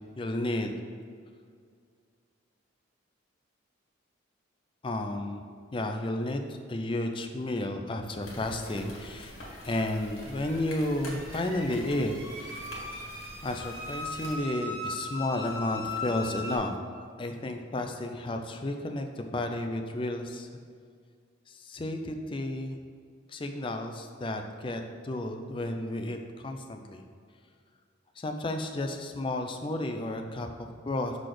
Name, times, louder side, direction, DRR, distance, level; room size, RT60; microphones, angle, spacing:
voice 1, 0.2-0.7 4.8-5.4 5.7-12.8 13.4-16.7 17.2-20.5 21.5-22.8 23.3-27.0 28.2-31.2, left 1 dB, 25° left, 5 dB, 0.4 m, -32 dB
sound 1, 8.2-14.4, left 1 dB, 85° left, 1.6 m, -46 dB
sound 2, 9.0-16.6, left 2 dB, 15° right, 1.1 m, -40 dB
6.0 x 4.1 x 4.9 m, 2.1 s
head